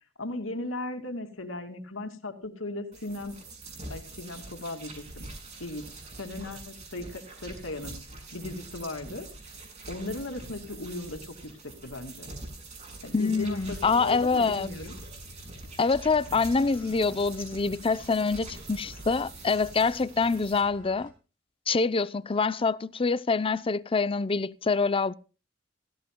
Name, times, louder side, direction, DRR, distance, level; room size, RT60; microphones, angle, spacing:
voice 1, 0.2-3.3 3.9-5.3 5.6-5.9 6.2-8.0 8.3-9.3 9.9-12.3 13.0-14.9, left 2 dB, 85° left, 2.5 m, -37 dB
sound 1, 2.9-20.6, right 2 dB, 35° right, 7.5 m, -44 dB
voice 2, 13.1-14.7 15.8-21.1 21.7-25.1, left 4 dB, 30° left, 0.5 m, -25 dB
sound 2, 13.4-21.1, left 2 dB, 50° right, 5.1 m, -51 dB
17.0 x 16.5 x 2.2 m
head